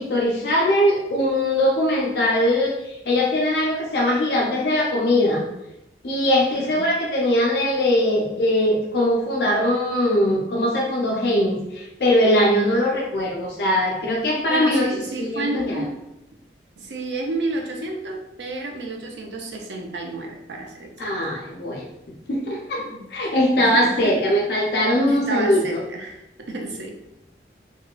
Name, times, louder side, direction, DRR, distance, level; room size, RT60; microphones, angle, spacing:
voice 1, 0.0-5.4 6.0-14.9 15.2-15.8 21.0-21.8 22.3-22.8 23.1-25.8, left 1 dB, 65° left, -2 dB, 0.5 m, -21 dB
voice 2, 14.5-16.0 16.8-21.1 22.8-24.4 25.1-26.9, right 2 dB, 80° right, 3 dB, 0.5 m, -31 dB
3.6 x 2.2 x 2.4 m, 0.88 s
head